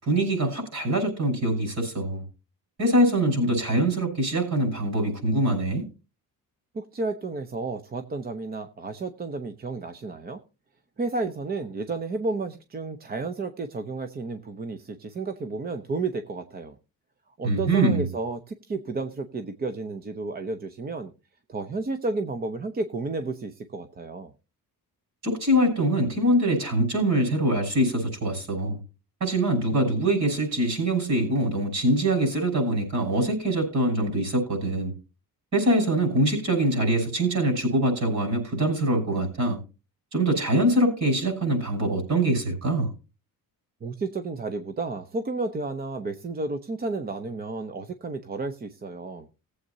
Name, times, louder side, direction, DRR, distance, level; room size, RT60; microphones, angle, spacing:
voice 1, 0.0-2.2 2.8-5.8 17.4-18.1 25.2-28.8 29.2-34.9 35.5-39.6 40.1-42.9, right 1 dB, 50° right, 6.3 m, -24 dB
voice 2, 6.7-10.4 11.0-16.8 17.4-21.1 21.5-24.3 43.8-49.3, right 3 dB, 25° right, 0.7 m, -32 dB
19.5 x 8.0 x 2.7 m
cardioid pair, 165°, 36 cm